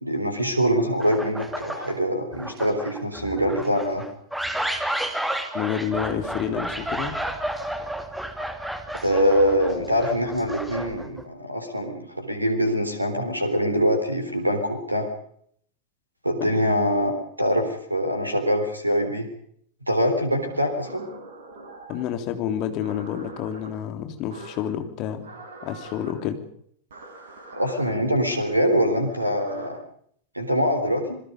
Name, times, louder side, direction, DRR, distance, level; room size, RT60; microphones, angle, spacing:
voice 1, 0.0-4.0 9.0-15.1 16.2-17.1 17.4-19.3 19.9-21.1 27.5-29.8 30.3-31.2, equal, 85° right, 7 dB, 3.8 m, -24 dB
sound 1, 1.0-2.0 2.3-11.2, right 1 dB, 5° right, 2.6 m, -31 dB
voice 2, 5.5-7.2 16.4-16.6 21.9-25.3 25.6-26.4, left 9 dB, 40° left, 7 dB, 3.2 m, -29 dB
sound 2, 20.4-22.1 22.8-23.7 24.3-24.7 25.2-26.1 26.9-27.8 28.9-29.7, right 2 dB, 65° right, 7.8 m, -43 dB
27.0 x 21.5 x 5.3 m, 0.65 s
figure-of-eight pair, 90°, 0 cm